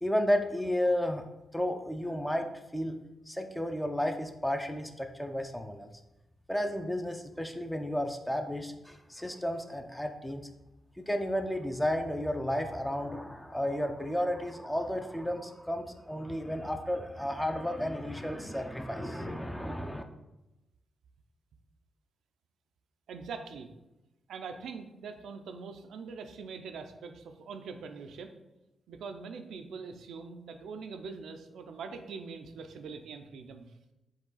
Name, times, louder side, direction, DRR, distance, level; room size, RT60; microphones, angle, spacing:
voice 1, 0.0-3.0 3.3-5.9 6.5-10.5 11.0-20.0, equal, 10° left, 5 dB, 0.4 m, -32 dB
voice 2, 23.1-23.7 24.3-28.3 28.9-33.7, right 5 dB, 80° right, 7 dB, 0.4 m, -43 dB
4.6 x 2.3 x 3.9 m, 0.96 s
supercardioid pair, 50°, 0 cm